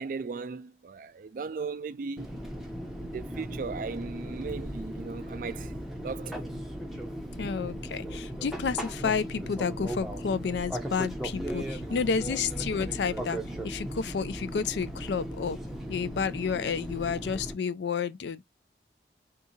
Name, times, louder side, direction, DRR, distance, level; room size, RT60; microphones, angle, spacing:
voice 1, 0.0-2.4 3.0-6.4 11.9-12.0, right 4 dB, 45° right, 0.3 m, -37 dB
Fixed-wing aircraft airplane, 2.2-17.5, equal, ahead, 0.6 m, -37 dB
voice 2, 7.4-13.4 13.6-15.6 15.9-18.4, left 5 dB, 70° left, 0.4 m, -30 dB
3.6 x 2.8 x 2.6 m
head